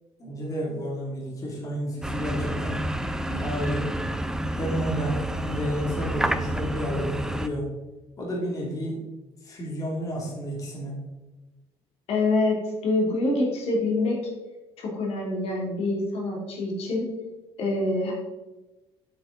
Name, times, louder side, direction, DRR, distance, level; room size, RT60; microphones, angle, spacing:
voice 1, 0.2-2.9 3.3-3.9 4.5-7.7 8.2-9.0 9.4-10.9, equal, 30° left, -3 dB, 2.6 m, -31 dB
sound 1, 2.0-7.5, right 1 dB, 5° right, 0.5 m, -29 dB
voice 2, 12.1-14.3 14.8-17.1 17.6-18.1, left 2 dB, 60° left, -2 dB, 2.8 m, -26 dB
8.8 x 8.2 x 3.8 m, 1.1 s
cardioid pair, 135°, 11 cm